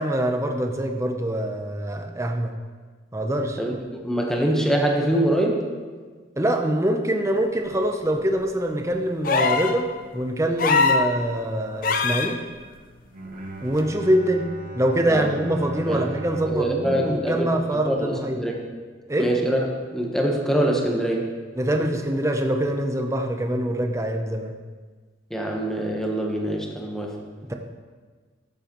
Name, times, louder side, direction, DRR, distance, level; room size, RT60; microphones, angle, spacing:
voice 1, 0.0-2.5 3.1-3.6 6.4-12.4 13.6-14.5 14.7-18.4 19.1-19.3 21.6-24.5 27.5-27.6, right 1 dB, 15° right, 4 dB, 0.7 m, -24 dB
voice 2, 4.0-5.6 15.1-15.3 15.9-16.0 16.5-17.5 17.8-18.6 19.2-19.6 19.9-21.3 25.3-27.1, right 1 dB, 5° left, -1 dB, 1.1 m, -24 dB
sound 1, 9.2-9.8 10.6-11.1 11.8-12.3 13.8-13.9, left 4 dB, 50° left, 0.6 m, -21 dB
Bowed string instrument, 13.1-18.4, right 2 dB, 45° right, 1.0 m, -39 dB
14.0 x 7.6 x 3.1 m, 1.5 s
head